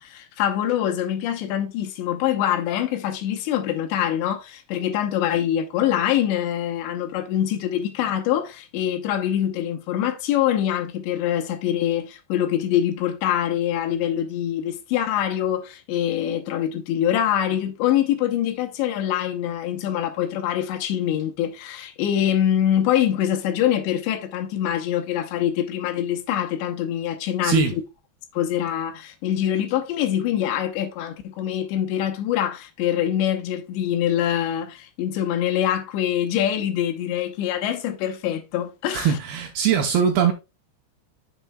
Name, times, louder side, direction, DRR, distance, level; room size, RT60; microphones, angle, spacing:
voice 1, 0.0-27.7 28.3-39.2, left 11 dB, 80° left, 3.1 m, -24 dB
voice 2, 27.4-27.7 38.9-40.3, right 8 dB, 75° right, 2.4 m, -21 dB
8.8 x 7.4 x 2.3 m
omnidirectional pair, 5.2 m